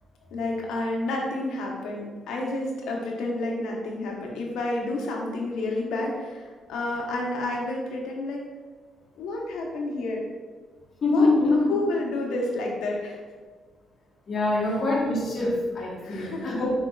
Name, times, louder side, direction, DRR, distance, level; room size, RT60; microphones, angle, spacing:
voice 1, 0.3-8.4 9.2-10.2 11.1-13.2 16.0-16.6, left 2 dB, 85° left, -1 dB, 0.9 m, -30 dB
voice 2, 11.0-11.6 14.3-16.8, left 2 dB, 50° left, -4 dB, 1.2 m, -24 dB
4.8 x 4.4 x 2.4 m, 1.5 s
cardioid pair, 90°, 0 cm